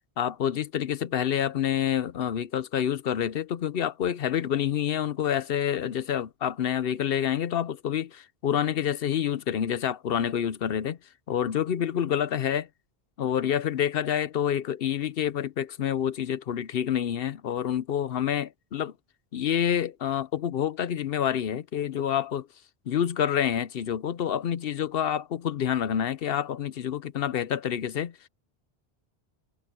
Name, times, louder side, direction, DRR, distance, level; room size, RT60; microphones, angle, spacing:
voice 1, 0.2-11.0 11.3-12.7 13.2-18.9 19.3-22.5 22.9-28.3, left 9 dB, 65° left, 0.9 m, -28 dB
omnidirectional pair, 1.1 m